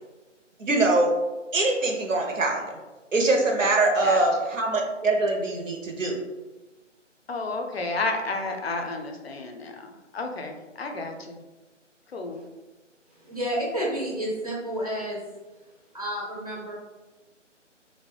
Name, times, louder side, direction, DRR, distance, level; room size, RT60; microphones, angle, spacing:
voice 1, 0.6-1.1 1.5-2.8 3.1-6.2, right 2 dB, 90° right, 1 dB, 0.6 m, -23 dB
voice 2, 7.3-11.4 12.1-12.4, left 3 dB, 55° left, 4 dB, 0.5 m, -31 dB
voice 3, 13.2-15.2 15.9-16.7, equal, 30° right, -5 dB, 0.5 m, -30 dB
2.6 x 2.1 x 3.2 m, 1.2 s
figure-of-eight pair, 150°, 37 cm